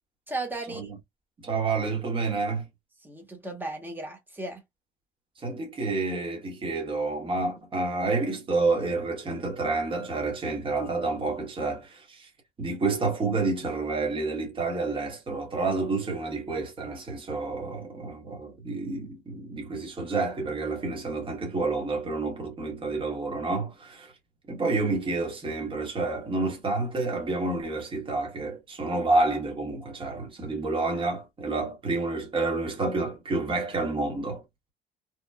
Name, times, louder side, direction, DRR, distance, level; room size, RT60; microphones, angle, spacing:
voice 1, 0.3-0.9 3.0-4.6, right 2 dB, 10° right, 1.1 m, -35 dB
voice 2, 1.4-2.7 5.4-12.3 12.6-24.1 24.5-34.4, right 3 dB, 30° right, 1.2 m, -29 dB
2.9 x 2.2 x 2.3 m
cardioid pair, 110°, 17 cm